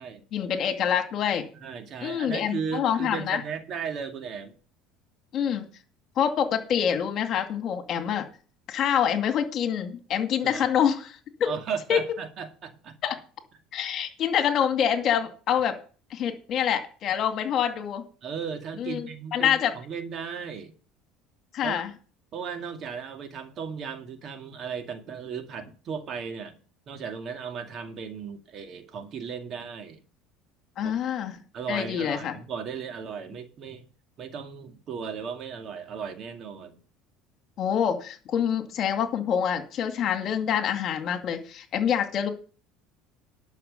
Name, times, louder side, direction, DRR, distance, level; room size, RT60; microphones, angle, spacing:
voice 1, 0.3-1.5 2.0-3.4 5.3-5.7 6.2-8.3 8.7-11.5 11.9-12.0 13.0-13.2 13.7-15.8 16.1-18.0 18.8-19.7 21.5-21.9 30.8-31.4 31.7-32.4 37.6-42.3, left 8 dB, 50° left, 2.3 m, -26 dB
voice 2, 1.6-4.5 10.4-10.7 11.5-13.0 18.2-20.7 21.6-21.8 22.3-26.6 26.9-30.0 30.8-30.9 31.5-33.9 34.2-36.8, right 6 dB, 45° right, 2.2 m, -36 dB
11.5 x 6.4 x 6.8 m
supercardioid pair, 105°, 0 cm